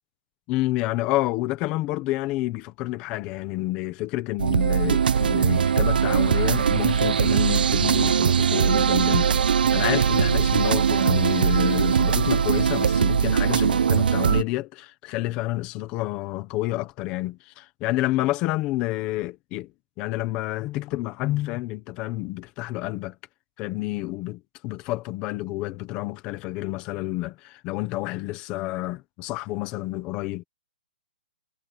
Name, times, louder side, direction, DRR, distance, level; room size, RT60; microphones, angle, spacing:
voice 1, 0.5-9.3 9.7-19.7 20.0-23.1 23.6-30.4, left 18 dB, 15° left, 1.2 m, -29 dB
sound 1, 4.4-14.4, right 7 dB, 60° right, 1.0 m, -21 dB
hypercardioid pair, 180°, 5 cm